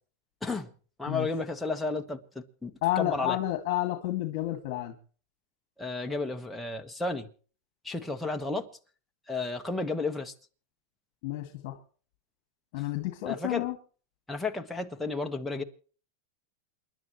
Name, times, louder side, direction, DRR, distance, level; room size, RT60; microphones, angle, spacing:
voice 1, 0.4-0.7 1.0-2.7 3.0-3.4 5.8-7.3 7.8-8.7 9.3-10.3 13.3-13.7 14.3-15.6, left 3 dB, 5° left, 1.4 m, -32 dB
voice 2, 2.8-5.0 11.2-11.8 12.7-13.8, left 15 dB, 50° left, 2.1 m, -30 dB
28.0 x 11.5 x 3.1 m
supercardioid pair, 150°, 0 cm